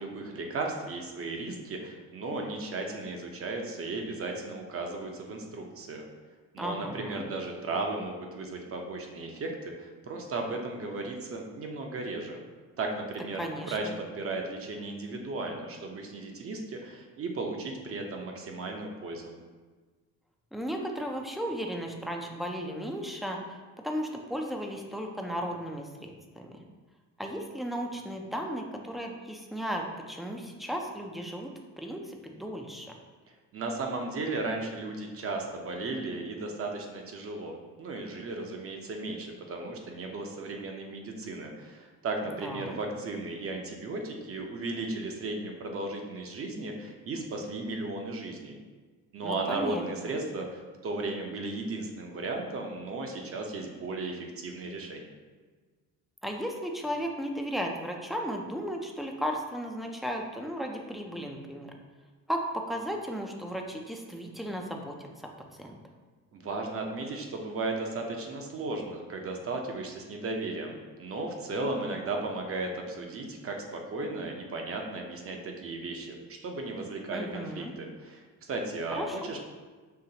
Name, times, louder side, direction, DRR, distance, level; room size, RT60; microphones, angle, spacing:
voice 1, 0.0-6.1 6.5-12.4 12.8-19.3 33.5-48.6 49.1-55.1 66.3-79.4, right 2 dB, 40° right, 2 dB, 0.7 m, -35 dB
voice 2, 6.6-7.2 13.4-13.9 20.5-23.6 23.8-26.6 27.2-31.5 31.8-32.9 42.4-42.8 49.2-50.1 56.2-61.7 62.3-65.3 65.6-65.8 77.1-77.7 78.9-79.3, equal, ahead, 2 dB, 0.4 m, -35 dB
5.7 x 2.9 x 2.8 m, 1.4 s
cardioid pair, 110°, 34 cm